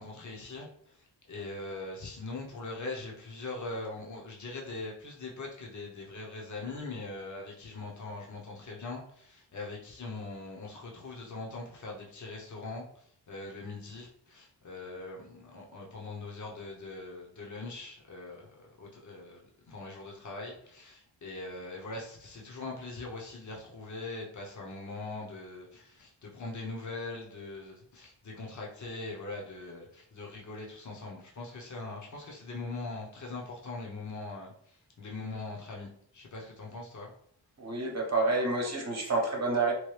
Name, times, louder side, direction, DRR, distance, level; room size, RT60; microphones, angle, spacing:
voice 1, 0.0-37.1, left 3 dB, 45° left, -1 dB, 0.9 m, -41 dB
voice 2, 37.6-39.7, right 3 dB, 40° right, 0 dB, 1.0 m, -28 dB
3.1 x 2.2 x 3.2 m, 0.62 s
cardioid pair, 70°, 42 cm